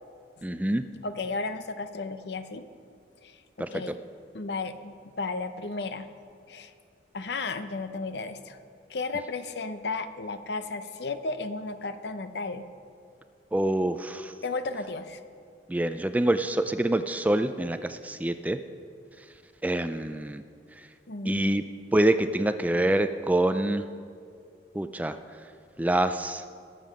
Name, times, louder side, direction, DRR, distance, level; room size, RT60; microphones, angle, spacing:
voice 1, 0.4-0.8 3.6-3.8 13.5-14.3 15.7-18.6 19.2-19.3 19.6-20.4 20.7-20.9 21.3-21.6 21.9-23.9 24.7-25.2 25.8-26.4, right 1 dB, 10° right, 10 dB, 0.3 m, -26 dB
voice 2, 1.0-2.7 3.2-3.4 3.7-4.0 4.3-6.1 6.5-6.7 7.1-8.6 8.9-12.7 14.4-15.2 21.1-21.6, left 3 dB, 70° left, 10 dB, 0.7 m, -34 dB
20.5 x 7.6 x 5.2 m, 2.4 s
head